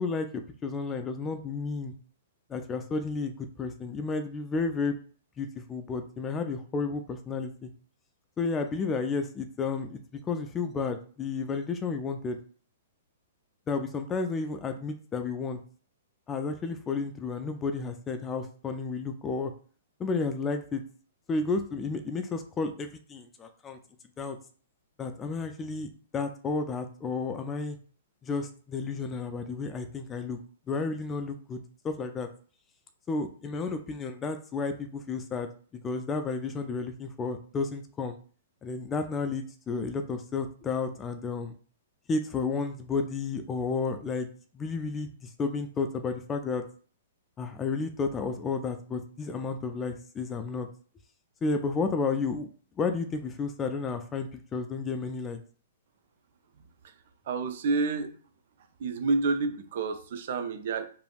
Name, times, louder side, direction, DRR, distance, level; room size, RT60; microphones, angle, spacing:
voice 1, 0.0-1.9 2.5-5.0 5.4-7.7 8.4-12.4 13.7-15.6 16.3-19.5 20.0-20.8 21.3-23.8 24.2-24.4 25.0-27.8 28.2-30.4 30.7-32.3 33.1-35.5 35.8-38.2 38.6-41.5 42.1-44.3 44.5-46.6 47.4-50.7 51.4-52.5 52.8-55.4, left 4 dB, 20° left, 7 dB, 0.4 m, -32 dB
voice 2, 57.3-58.2 58.8-60.9, right 3 dB, 60° right, 8 dB, 0.5 m, -29 dB
3.3 x 2.6 x 2.3 m, 0.42 s
hypercardioid pair, 120°, 0 cm